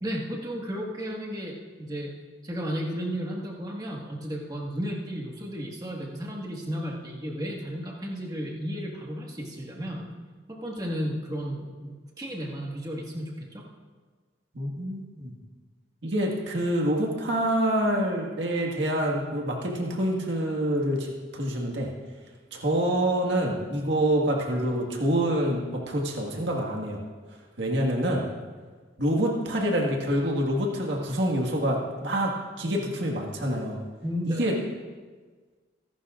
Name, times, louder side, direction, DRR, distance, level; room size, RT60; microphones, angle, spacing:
voice 1, 0.0-2.1 2.4-10.1 10.5-13.6 34.0-34.5, equal, 20° right, -2 dB, 1.7 m, -33 dB
voice 2, 14.5-15.3 16.0-21.9 22.5-27.0 27.6-28.2 29.0-32.3 32.6-33.8 34.3-34.5, right 1 dB, 65° right, -1 dB, 1.8 m, -26 dB
25.0 x 11.5 x 2.5 m, 1.4 s
head